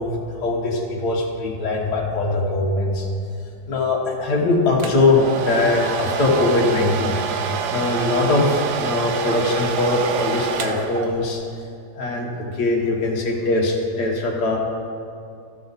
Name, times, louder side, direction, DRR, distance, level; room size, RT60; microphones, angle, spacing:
voice 1, 0.0-3.1 3.7-11.4 11.9-14.6, left 2 dB, 65° left, -2 dB, 1.8 m, -21 dB
Domestic sounds home sounds, 4.8-11.5, right 7 dB, 75° right, 0.6 m, -27 dB
13.5 x 6.7 x 4.0 m, 2.6 s
omnidirectional pair, 1.9 m